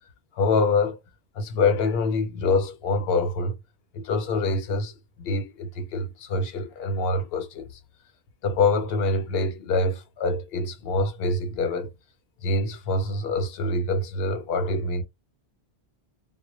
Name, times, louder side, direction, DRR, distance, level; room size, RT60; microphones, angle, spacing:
voice 1, 0.3-1.0 1.3-3.6 3.9-7.8 8.4-11.9 12.4-15.0, left 3 dB, 70° left, 0.8 m, -25 dB
2.1 x 2.0 x 2.9 m
omnidirectional pair, 1.1 m